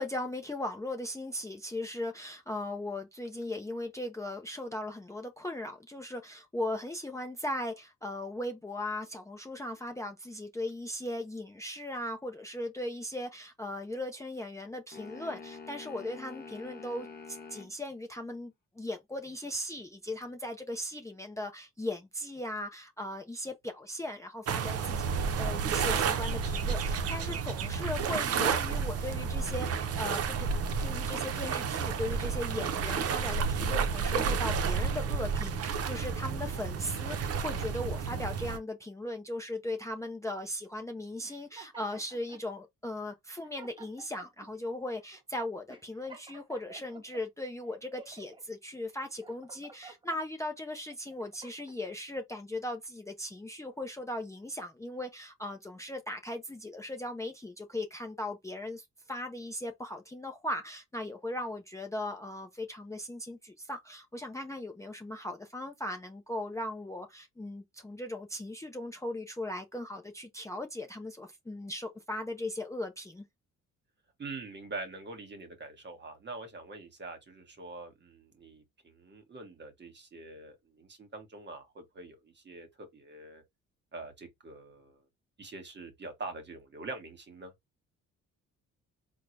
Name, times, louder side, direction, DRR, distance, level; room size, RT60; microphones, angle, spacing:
voice 1, 0.0-25.1 25.4-30.5 30.8-73.2, left 1 dB, 10° left, 0.5 m, -38 dB
sound 1, 14.9-17.7, left 5 dB, 35° left, 1.0 m, -46 dB
sound 2, 24.5-38.6, right 6 dB, 55° right, 0.7 m, -31 dB
sound 3, 41.2-42.4 43.1-43.2 43.4-44.5 45.1-45.2 45.7-47.2 47.7-48.4 48.9-50.2 50.8-51.8, right 4 dB, 15° right, 0.9 m, -52 dB
voice 2, 74.2-83.4 83.9-85.0 85.4-87.5, right 3 dB, 35° right, 1.3 m, -44 dB
3.8 x 2.2 x 3.1 m
cardioid pair, 90°, 30 cm